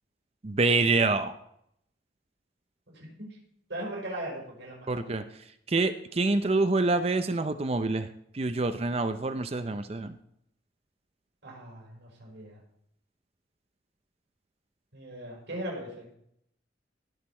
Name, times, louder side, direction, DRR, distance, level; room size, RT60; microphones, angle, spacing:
voice 1, 0.4-1.3 4.9-5.2 5.7-8.1 8.3-10.1, right 3 dB, 35° right, 10 dB, 0.5 m, -26 dB
voice 2, 2.9-3.3 3.7-5.1 11.4-12.6 14.9-16.2, right 1 dB, 90° right, -2 dB, 5.5 m, -39 dB
17.5 x 6.6 x 4.3 m, 0.72 s
head